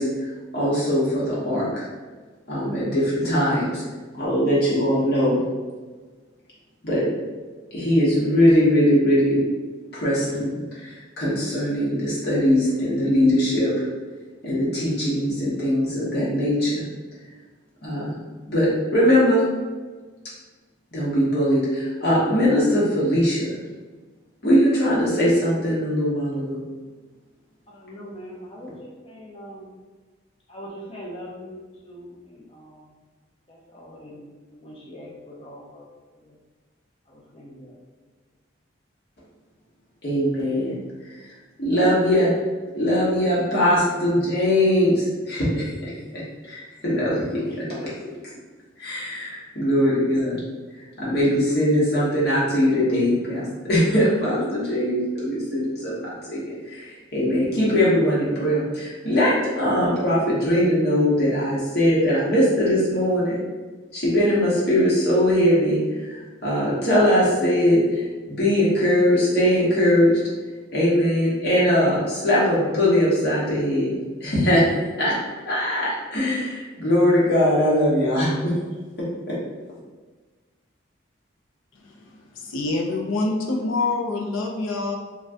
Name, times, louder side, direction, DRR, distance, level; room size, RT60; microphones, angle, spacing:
voice 1, 0.0-1.8 2.5-3.8 4.2-5.5 6.8-7.0 7.7-9.4 9.9-13.7 14.4-16.8 17.8-18.2 18.4-19.5 20.9-23.6 24.4-26.6 40.0-40.7 41.1-42.3 42.7-47.9 48.8-50.4 50.7-63.4 63.9-70.2 70.7-74.6 75.0-75.2 75.5-78.5 79.0-79.4, equal, 55° left, -8 dB, 0.9 m, -21 dB
voice 2, 27.7-29.8 30.5-32.9 33.5-34.2 34.5-35.9 36.1-36.4 37.1-37.8, equal, 30° left, -3 dB, 0.5 m, -42 dB
voice 3, 82.4-85.0, left 3 dB, 85° left, 1 dB, 0.5 m, -25 dB
2.6 x 2.2 x 3.3 m, 1.4 s
head